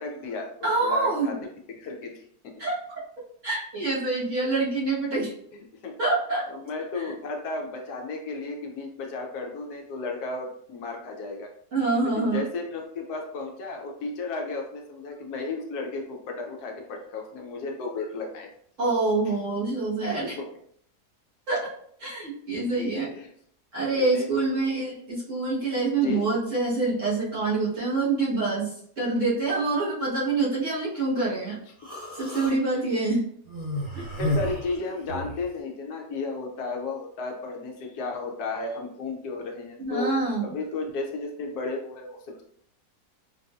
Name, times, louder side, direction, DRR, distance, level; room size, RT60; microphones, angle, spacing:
voice 1, 0.0-0.5 0.8-1.3 1.7-2.6 5.8-5.9 6.5-11.5 12.1-18.5 20.0-20.3 23.1-23.3 23.9-24.2 26.0-26.3 34.2-40.1 40.4-42.4, left 3 dB, 75° left, 1 dB, 1.2 m, -34 dB
voice 2, 0.6-1.3 2.6-2.8 3.4-5.3 6.0-6.5 6.9-7.1 11.7-12.4 18.8-20.4 21.5-21.7 22.0-23.1 23.7-31.6 32.1-33.2 33.9-34.0 39.8-40.5, right 3 dB, 50° right, -8 dB, 1.6 m, -26 dB
Human voice, 31.8-32.5 33.5-35.4, left 1 dB, 5° right, 1.2 m, -31 dB
4.4 x 2.6 x 2.4 m, 0.65 s
omnidirectional pair, 1.7 m